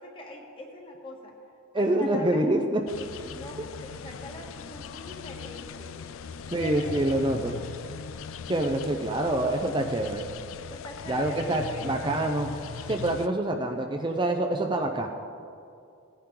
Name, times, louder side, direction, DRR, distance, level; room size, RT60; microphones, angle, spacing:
voice 1, 0.0-1.3 1.7-2.5 3.0-6.0 6.6-7.6 10.6-12.1, left 1 dB, 25° left, 0 dB, 1.6 m, -43 dB
voice 2, 1.7-2.8 6.5-7.5 8.5-10.3 11.1-12.5 12.9-15.1, right 1 dB, 20° right, 3 dB, 0.6 m, -26 dB
sound 1, 2.9-13.3, left 6 dB, 75° left, 0.4 m, -40 dB
17.5 x 10.5 x 3.8 m, 2.5 s
head